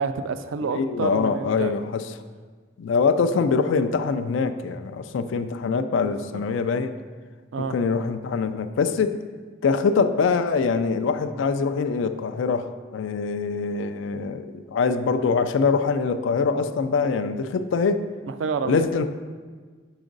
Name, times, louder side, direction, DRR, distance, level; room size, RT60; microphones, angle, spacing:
voice 1, 0.0-1.8 6.0-6.4 7.5-7.7 18.3-18.9, right 5 dB, 90° right, 11 dB, 0.4 m, -29 dB
voice 2, 0.7-2.1 2.8-6.9 7.6-9.2 9.6-18.0 18.6-19.1, left 5 dB, 80° left, 10 dB, 0.3 m, -24 dB
5.1 x 4.9 x 3.9 m, 1.5 s
head